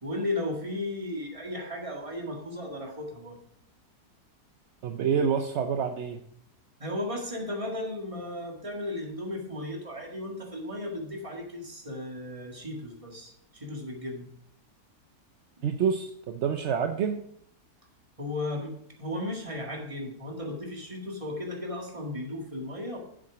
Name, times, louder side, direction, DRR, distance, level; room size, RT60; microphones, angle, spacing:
voice 1, 0.0-3.4 6.8-14.3 18.2-23.0, left 1 dB, 20° right, 0 dB, 1.9 m, -35 dB
voice 2, 4.8-6.2 15.6-17.2, right 7 dB, 60° right, 6 dB, 0.7 m, -27 dB
7.7 x 7.4 x 5.0 m, 0.68 s
omnidirectional pair, 1.7 m